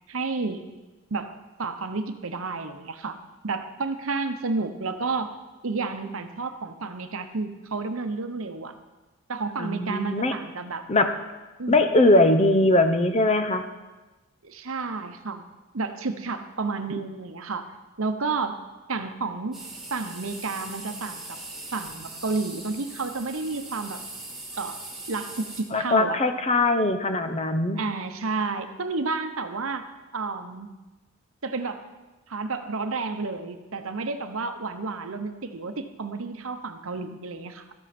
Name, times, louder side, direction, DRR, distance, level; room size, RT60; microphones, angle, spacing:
voice 1, 0.1-0.6 1.1-3.2 3.4-5.4 5.6-8.8 9.3-10.8 11.6-11.8 14.4-15.4 15.7-17.7 18.0-18.6 18.9-19.6 19.9-21.4 21.7-24.0 24.6-24.8 25.1-26.2 27.8-29.9 30.1-30.7 31.4-31.8 32.3-37.7, right 3 dB, 65° right, 8 dB, 0.9 m, -31 dB
voice 2, 9.6-10.3 10.9-11.1 11.7-13.7 25.7-27.8, left 2 dB, 30° left, 8 dB, 0.7 m, -21 dB
sound 1, 19.5-25.6, right 2 dB, ahead, 1.9 m, -40 dB
13.5 x 11.0 x 4.3 m, 1.1 s
head